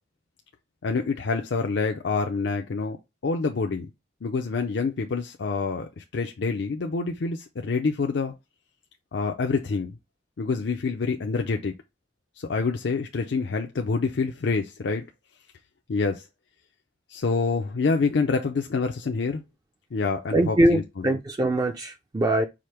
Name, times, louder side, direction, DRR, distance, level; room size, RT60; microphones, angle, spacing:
voice 1, 0.8-3.0 3.2-3.9 4.2-8.3 9.1-10.0 10.4-11.7 12.4-15.0 15.9-16.3 17.1-19.4 19.9-21.1, left 4 dB, 75° left, 0.5 m, -27 dB
voice 2, 20.3-22.5, right 1 dB, 25° right, 0.4 m, -22 dB
4.9 x 2.0 x 4.4 m
head